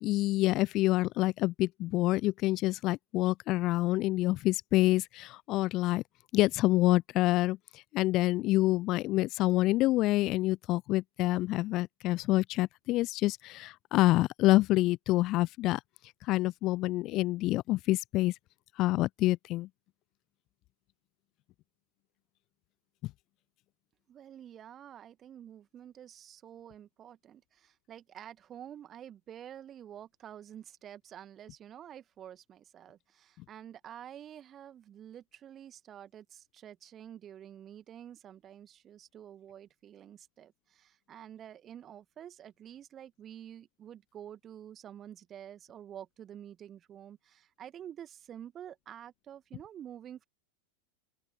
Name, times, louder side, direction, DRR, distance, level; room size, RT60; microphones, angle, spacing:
voice 1, 0.0-6.0 6.3-15.8 16.2-18.3 18.8-19.7, left 18 dB, 35° left, 0.4 m, -27 dB
voice 2, 24.1-50.2, right 10 dB, 25° right, 2.0 m, -49 dB
open air
figure-of-eight pair, 90°, 0 cm